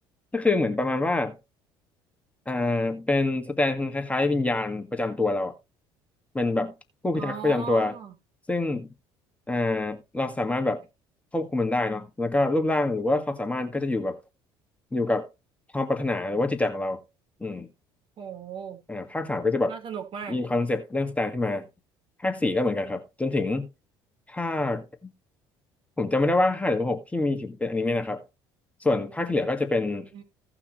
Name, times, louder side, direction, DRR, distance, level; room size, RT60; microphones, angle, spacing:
voice 1, 0.3-1.4 2.5-5.6 6.3-6.7 7.0-7.9 8.5-8.9 9.5-10.9 11.3-14.2 14.9-15.3 15.7-17.0 17.4-17.7 18.9-19.8 20.3-21.7 22.2-23.7 24.3-25.1 26.0-28.2 28.8-30.1, left 2 dB, 10° left, 1.8 m, -26 dB
voice 2, 7.1-8.1 18.2-18.8 19.7-20.4 30.1-30.2, right 7 dB, 50° right, 4.1 m, -37 dB
16.5 x 6.0 x 3.1 m
hypercardioid pair, 65°, 11 cm